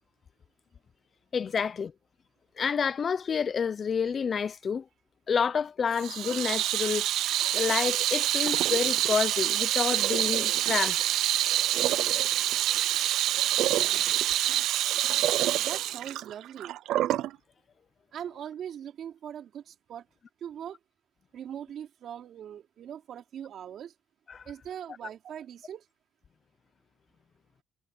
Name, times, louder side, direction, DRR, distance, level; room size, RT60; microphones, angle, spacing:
voice 1, 1.3-1.9 2.6-4.8 5.3-7.1 7.5-11.0 24.3-24.4, left 6 dB, 40° left, 0.5 m, -29 dB
Water tap faucet / Sink (filling or washing), 6.0-17.3, right 13 dB, 85° right, 0.4 m, -26 dB
voice 2, 15.6-16.7 18.1-20.1 20.4-20.8 21.3-23.9 24.5-25.8, right 9 dB, 60° right, 4.2 m, -41 dB
cardioid pair, 130°, 0 cm